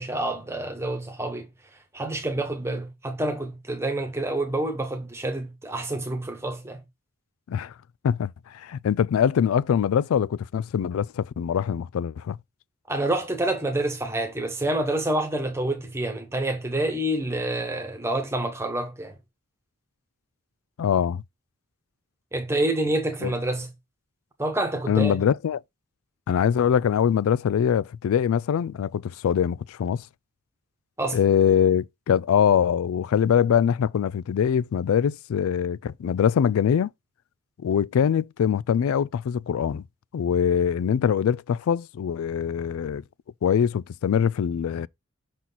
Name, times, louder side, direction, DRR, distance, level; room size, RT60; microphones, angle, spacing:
voice 1, 0.0-1.5 1.9-6.8 12.9-19.1 22.3-23.7 24.4-25.2 31.0-31.2, right 1 dB, 10° right, 1.1 m, -27 dB
voice 2, 8.0-12.4 20.8-21.2 23.2-23.3 24.9-25.6 26.3-30.0 31.1-36.9 37.6-39.8 40.1-43.0 43.4-44.9, left 8 dB, 75° left, 0.3 m, -23 dB
6.0 x 4.2 x 3.9 m
head